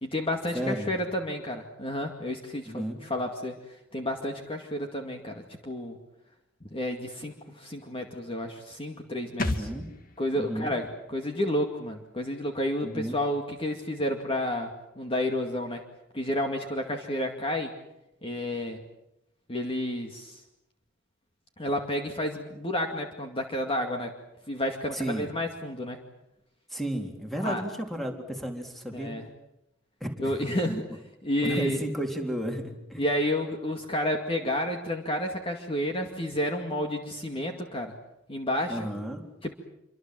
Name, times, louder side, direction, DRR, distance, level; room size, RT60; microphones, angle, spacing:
voice 1, 0.0-2.8 3.1-3.6 3.9-6.0 6.7-9.7 10.2-14.7 15.0-15.8 16.1-17.7 18.2-18.8 19.5-20.4 21.6-24.1 24.5-26.0 27.4-27.6 28.9-29.2 30.2-31.8 33.0-37.9 38.3-38.8 39.4-39.5, left 1 dB, 30° left, 3 dB, 2.3 m, -30 dB
voice 2, 0.5-1.0 2.7-3.1 9.4-9.9 10.4-10.7 12.8-13.2 24.9-25.3 26.7-29.1 30.0-30.4 31.4-33.0 38.7-39.3, right 1 dB, ahead, 3 dB, 3.6 m, -33 dB
sound 1, 9.4-12.9 13.2-13.3, left 2 dB, 45° left, 2.2 m, -37 dB
27.5 x 25.0 x 7.7 m, 0.86 s
head